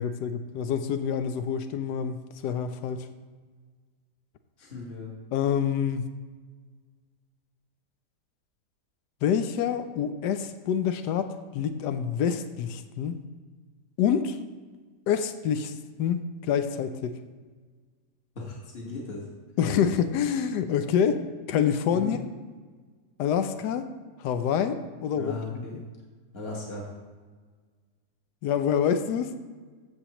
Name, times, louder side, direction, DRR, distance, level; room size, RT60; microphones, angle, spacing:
voice 1, 0.0-3.1 5.3-6.1 9.2-13.2 14.0-14.4 15.1-15.7 16.0-17.2 19.6-21.2 21.5-22.2 23.2-23.9 24.2-25.8 28.4-29.3, left 8 dB, 85° left, 9 dB, 1.2 m, -27 dB
voice 2, 4.6-5.1 18.4-19.2 21.9-22.1 25.1-25.7 26.3-26.9, left 2 dB, 40° left, -3 dB, 1.8 m, -37 dB
14.5 x 7.7 x 3.0 m, 1.4 s
omnidirectional pair, 1.7 m